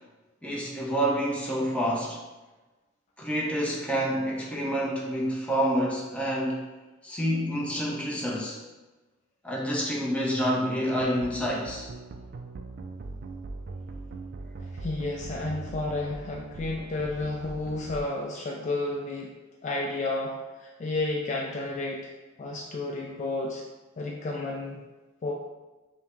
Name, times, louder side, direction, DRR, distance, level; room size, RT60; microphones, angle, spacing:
voice 1, 0.4-2.2 3.2-6.6 7.0-8.6 9.4-11.9, equal, 5° left, -4 dB, 0.6 m, -28 dB
sound 1, 11.0-18.0, right 3 dB, 50° right, 0.4 m, -40 dB
voice 2, 14.7-19.3 19.6-22.1 22.4-23.6 24.0-24.8 25.2-25.3, left 2 dB, 35° left, -1 dB, 0.3 m, -31 dB
5.4 x 2.2 x 3.0 m, 1.2 s
head